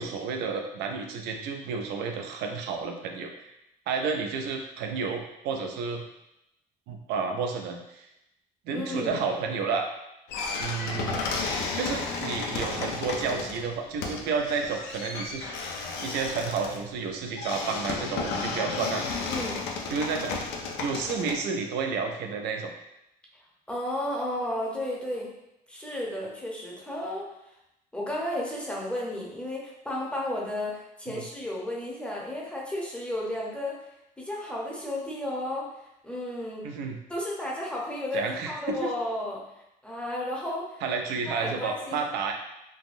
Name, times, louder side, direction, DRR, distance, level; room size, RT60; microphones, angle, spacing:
voice 1, 0.0-3.5 3.9-6.1 6.9-8.1 8.7-9.9 10.6-11.2 11.7-15.5 15.8-19.1 19.9-20.4 20.8-22.7 31.1-31.2 36.6-37.0 38.1-38.9 40.8-42.3, right 5 dB, 80° right, 4 dB, 0.5 m, -31 dB
voice 2, 8.7-9.2 19.3-19.7 23.7-25.3 25.7-27.3 27.9-33.8 34.2-35.7 36.0-36.6 37.1-39.4 39.8-40.8 41.3-42.0, left 1 dB, 5° left, -4 dB, 0.7 m, -33 dB
sound 1, 10.3-21.4, left 4 dB, 85° left, 0.4 m, -33 dB
3.3 x 2.1 x 2.5 m, 0.86 s
cardioid pair, 110°, 17 cm